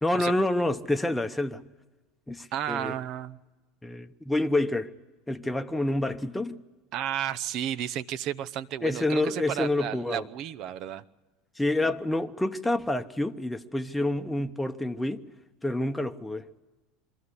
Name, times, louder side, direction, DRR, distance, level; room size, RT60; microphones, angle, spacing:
voice 1, 0.0-1.6 2.3-3.0 3.8-4.9 5.3-6.6 8.8-10.3 11.6-15.2 15.6-16.5, left 2 dB, 5° left, 0.9 m, -28 dB
voice 2, 2.5-3.4 6.9-11.0, right 10 dB, 55° right, 0.7 m, -32 dB
23.5 x 14.0 x 9.8 m
hypercardioid pair, 85°, 0 cm